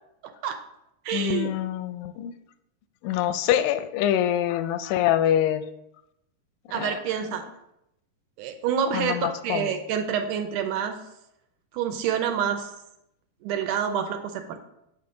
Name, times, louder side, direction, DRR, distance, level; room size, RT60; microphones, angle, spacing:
voice 1, 0.2-0.6 1.1-1.5 6.7-7.5 8.4-11.0 11.7-12.7 13.4-14.6, right 8 dB, 80° right, 6 dB, 2.1 m, -27 dB
voice 2, 1.1-2.3 3.0-5.6 6.7-7.0 8.9-9.7, left 11 dB, 85° left, 11 dB, 2.3 m, -25 dB
8.5 x 6.1 x 3.7 m, 0.83 s
omnidirectional pair, 3.9 m